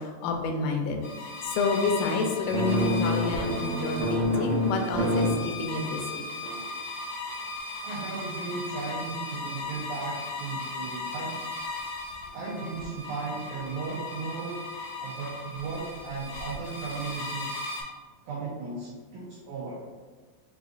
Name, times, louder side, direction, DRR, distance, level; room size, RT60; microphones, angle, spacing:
voice 1, 0.0-6.2, left 3 dB, 85° left, 3 dB, 2.3 m, -29 dB
sound 1, 1.0-17.8, left 2 dB, 70° left, 0.9 m, -37 dB
sound 2, 2.5-5.3 5.8-6.1 6.4-6.6, left 1 dB, 70° right, 1.7 m, -27 dB
voice 2, 7.8-11.5 12.3-14.6 15.0-17.7 18.2-19.8, right 4 dB, 90° right, -5 dB, 1.6 m, -36 dB
6.7 x 2.5 x 2.4 m, 1.4 s
omnidirectional pair, 4.1 m